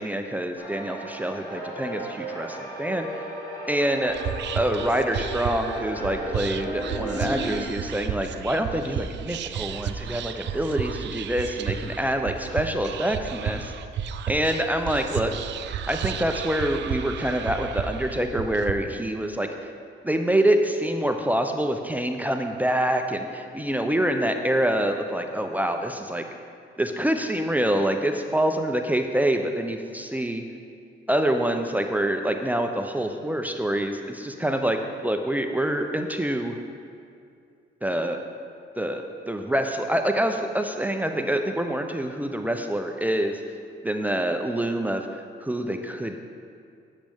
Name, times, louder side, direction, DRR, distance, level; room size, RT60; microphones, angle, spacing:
voice 1, 0.0-3.1 3.7-4.2 4.5-13.7 14.3-15.3 15.9-19.5 20.0-26.2 26.8-30.4 31.1-36.6 37.8-38.2 38.8-43.4 43.8-45.0 45.4-46.2, right 1 dB, 10° right, 5 dB, 0.5 m, -26 dB
sound 1, 0.6-7.6, right 1 dB, 20° left, 2.4 m, -34 dB
Whispering, 4.1-18.7, right 8 dB, 65° right, 0.5 m, -33 dB
10.0 x 7.5 x 3.5 m, 2.4 s
cardioid pair, 90°, 20 cm